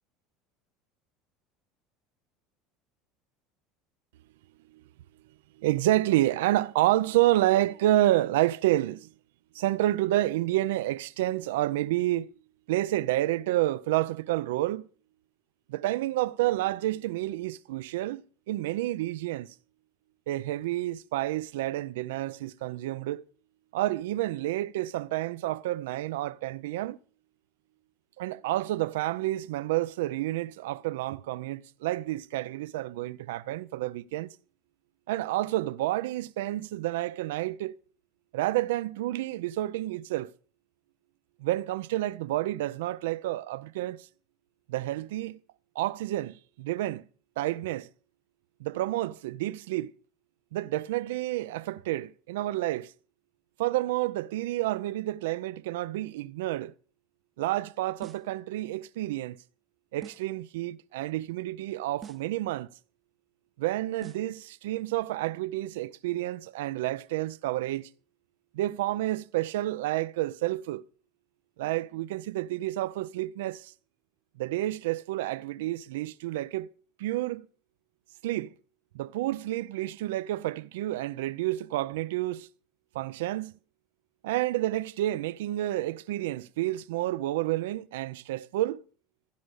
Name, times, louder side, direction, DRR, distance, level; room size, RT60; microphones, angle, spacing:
voice 1, 5.6-9.1 9.5-12.3 12.7-14.9 15.7-18.2 18.5-19.5 20.3-23.2 23.7-27.0 28.2-34.3 35.1-37.8 38.3-40.3 41.4-44.1 44.7-45.4 45.8-47.0 47.4-47.9 48.6-49.9 50.5-52.9 53.6-56.7 57.4-59.4 59.9-62.7 63.6-67.9 68.5-70.8 71.6-73.7 74.4-76.7 77.0-77.5 78.2-78.5 78.9-82.5 82.9-83.6 84.2-88.8, right 15 dB, 85° right, 0.5 m, -29 dB
sound 1, 58.0-58.4 60.0-60.4 62.0-62.4 64.0-64.4, right 7 dB, 30° right, 0.7 m, -46 dB
15.5 x 5.3 x 8.1 m
supercardioid pair, 95°, 0 cm